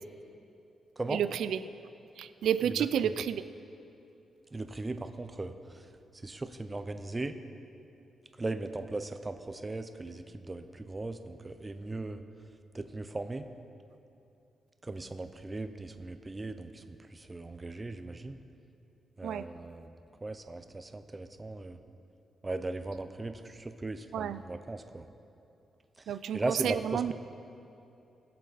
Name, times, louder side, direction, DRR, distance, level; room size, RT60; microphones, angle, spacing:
voice 1, 1.1-1.6 2.2-3.4 19.2-19.4 24.1-24.4 26.1-27.1, right 9 dB, 85° right, 13 dB, 0.3 m, -30 dB
voice 2, 4.5-5.9 6.2-7.4 8.4-12.2 12.7-13.5 14.8-18.4 19.2-19.9 20.2-21.8 22.4-25.1 26.0-26.1 26.3-27.1, right 2 dB, 15° right, 9 dB, 0.5 m, -38 dB
20.5 x 7.6 x 4.1 m, 2.8 s
wide cardioid pair, 165°, 0 cm